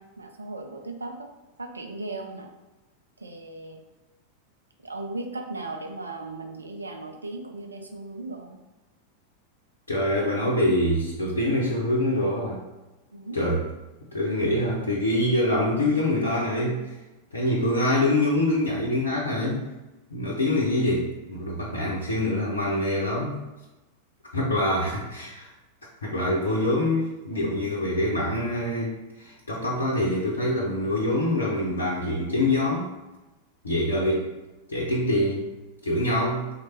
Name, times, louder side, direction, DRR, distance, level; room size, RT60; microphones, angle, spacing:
voice 1, 0.0-1.3 1.6-2.5 3.2-3.8 4.8-8.6 13.1-13.4 24.7-25.1, right 2 dB, 75° right, 3 dB, 0.4 m, -37 dB
voice 2, 9.9-12.6 13.3-13.6 14.1-17.0 17.3-19.6 20.1-23.4 24.3-25.5 26.0-32.9 33.6-34.3 34.7-35.5 35.8-36.5, left 1 dB, 75° left, -4 dB, 0.6 m, -25 dB
3.1 x 2.2 x 4.2 m, 1.1 s
figure-of-eight pair, 90°, 0 cm